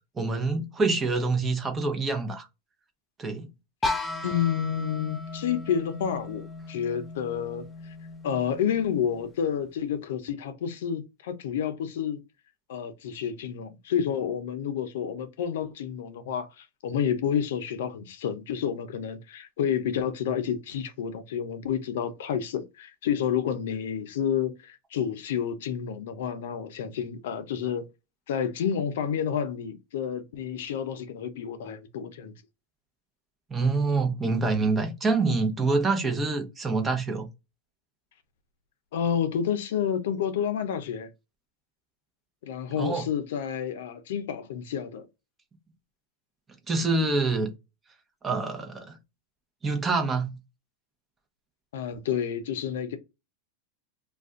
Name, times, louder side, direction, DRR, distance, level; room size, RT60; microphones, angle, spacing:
voice 1, 0.2-2.5 3.2-3.5 33.5-37.3 42.8-43.1 46.7-47.5 48.2-49.0 49.6-50.4, right 3 dB, 15° right, 0.8 m, -26 dB
sound 1, 3.8-9.6, left 2 dB, 15° left, 0.4 m, -36 dB
voice 2, 4.2-7.9 8.2-12.2 12.7-27.9 28.3-32.3 38.9-41.1 42.4-45.1 51.7-53.0, left 8 dB, 80° left, 0.6 m, -30 dB
2.5 x 2.3 x 3.6 m
supercardioid pair, 135°, 0 cm